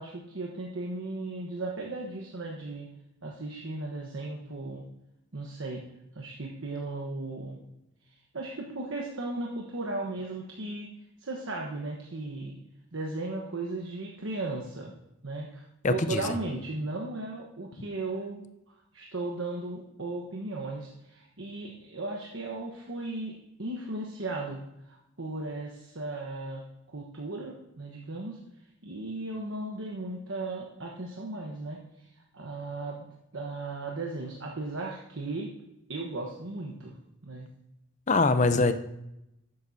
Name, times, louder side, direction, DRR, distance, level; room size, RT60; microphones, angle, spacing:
voice 1, 0.0-2.9 3.2-4.8 5.3-5.8 6.1-7.6 8.3-10.9 11.2-12.6 12.9-15.0 15.2-26.6 26.9-28.4 28.8-32.1 32.3-33.1 33.3-35.5 35.9-36.9 37.2-37.5, right 2 dB, 75° right, -1 dB, 1.2 m, -36 dB
voice 2, 15.8-16.3 38.1-38.7, left 3 dB, 35° left, 10 dB, 0.6 m, -23 dB
12.0 x 9.2 x 2.7 m, 0.86 s
head